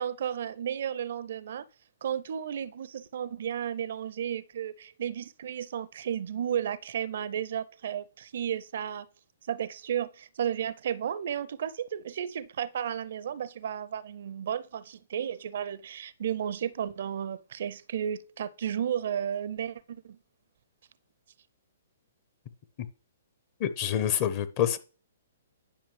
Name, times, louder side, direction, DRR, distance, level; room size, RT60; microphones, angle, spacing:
voice 1, 0.0-1.6 2.0-9.1 9.5-20.2, right 9 dB, 55° right, 0.4 m, -33 dB
voice 2, 23.6-24.8, left 9 dB, 35° left, 0.8 m, -27 dB
10.5 x 5.6 x 3.2 m
figure-of-eight pair, 120°, 0 cm